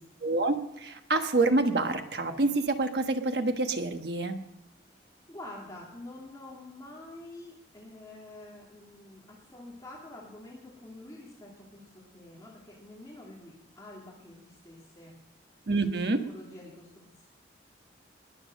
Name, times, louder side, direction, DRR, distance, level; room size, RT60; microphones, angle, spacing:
voice 1, 0.2-4.4 15.7-16.2, right 2 dB, 60° right, 6 dB, 1.3 m, -27 dB
voice 2, 4.9-15.2 16.3-17.3, left 1 dB, 20° left, -4 dB, 2.5 m, -47 dB
20.5 x 7.3 x 6.4 m, 0.93 s
head